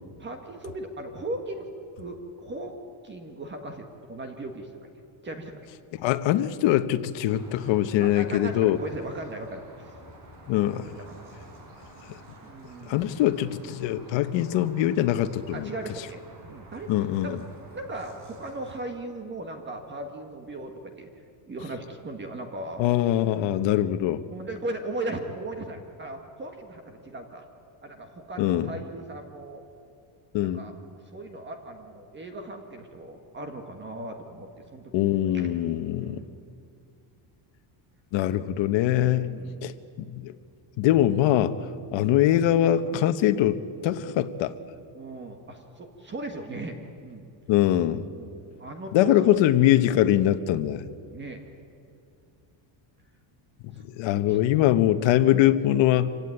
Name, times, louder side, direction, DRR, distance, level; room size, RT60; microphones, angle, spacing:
voice 1, 0.2-2.7 3.0-4.7 5.2-5.6 8.0-9.9 10.7-11.4 12.4-13.1 15.5-16.2 16.5-17.4 17.7-21.1 21.5-22.8 24.3-27.4 27.8-29.6 30.4-35.5 36.0-36.4 38.9-39.7 41.9-42.1 44.9-46.8 47.0-47.3 48.2-49.3 51.1-51.4 53.7-53.8 54.3-54.4, right 2 dB, 20° right, 5 dB, 1.6 m, -38 dB
voice 2, 6.0-8.8 10.5-10.9 12.8-15.7 16.9-17.3 22.8-24.2 28.4-28.7 30.3-30.6 34.9-36.2 38.1-39.3 39.6-39.7 40.0-40.3 40.8-41.6 41.9-44.5 47.5-48.1 48.9-50.9 54.0-56.1, left 12 dB, 65° left, 10 dB, 1.1 m, -23 dB
sound 1, 7.3-18.8, right 1 dB, 40° right, 5.4 m, -49 dB
26.0 x 17.0 x 9.7 m, 2.5 s
cardioid pair, 175°, 49 cm